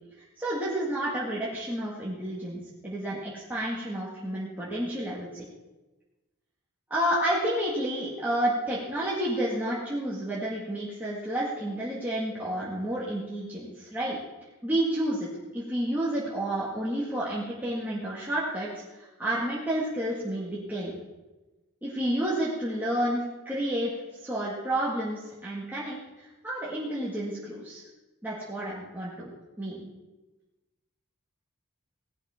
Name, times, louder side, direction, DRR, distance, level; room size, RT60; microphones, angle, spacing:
voice 1, 0.2-5.4 6.9-14.2 14.6-20.9 21.8-23.9 24.2-27.8 28.2-29.3 29.6-29.9, right 1 dB, 10° right, -8 dB, 2.1 m, -30 dB
17.5 x 12.0 x 3.8 m, 1.1 s
head